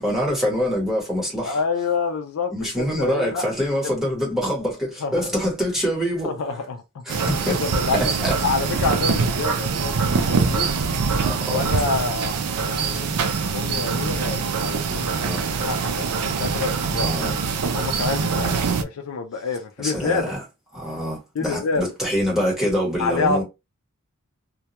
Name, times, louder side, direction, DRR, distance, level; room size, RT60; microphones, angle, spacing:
voice 1, 0.0-1.6 2.5-6.3 7.1-7.6 7.9-8.4 10.1-10.2 11.2-11.6 15.2-15.5 17.0-17.4 18.3-18.8 19.8-20.4 20.7-23.4, equal, ahead, 1.1 m, -25 dB
voice 2, 1.4-3.5 3.8-3.9 5.0-5.3 6.2-7.0 7.5-10.7 11.5-13.2 13.5-15.1 15.6-17.1 17.7-20.3 21.4-21.9 23.0-23.4, left 4 dB, 75° left, 0.4 m, -27 dB
sound 1, 7.1-18.8, right 5 dB, 90° right, 0.4 m, -24 dB
2.2 x 2.2 x 2.8 m
head